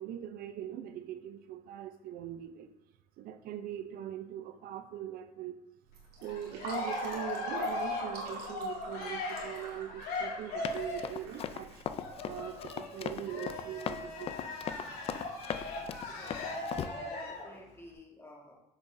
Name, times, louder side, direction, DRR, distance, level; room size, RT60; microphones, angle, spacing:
voice 1, 0.0-2.7 3.2-5.6 6.2-11.8 12.2-14.7, right 10 dB, 70° right, 0.5 m, -42 dB
Fill (with liquid), 5.9-12.3, right 3 dB, 90° right, 1.8 m, -45 dB
Cheering, 6.2-11.2 12.0-17.5, left 2 dB, 80° left, 2.1 m, -39 dB
Run, 10.6-16.9, left 8 dB, 40° left, 0.4 m, -38 dB
voice 2, 15.7-18.6, left 1 dB, 15° left, 1.6 m, -54 dB
7.1 x 6.7 x 2.6 m
cardioid pair, 120°, 16 cm